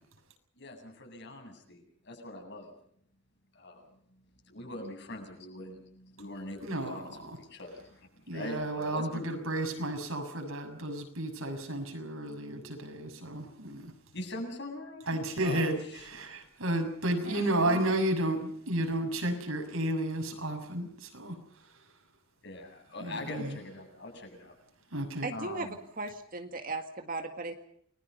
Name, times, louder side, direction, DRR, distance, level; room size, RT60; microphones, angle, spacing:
voice 1, 0.6-2.7 3.5-3.8 4.4-9.4 14.1-16.3 17.2-17.9 22.4-24.5 25.3-25.8, left 1 dB, 55° left, 3 dB, 8.0 m, -43 dB
voice 2, 6.6-7.0 7.2-7.3 8.3-13.9 15.1-21.4 23.0-23.5 24.9-25.3, right 1 dB, 80° right, 4 dB, 6.6 m, -32 dB
voice 3, 25.2-25.7 26.0-27.7, right 3 dB, 40° right, 6 dB, 1.8 m, -37 dB
29.5 x 21.5 x 5.5 m, 0.65 s
head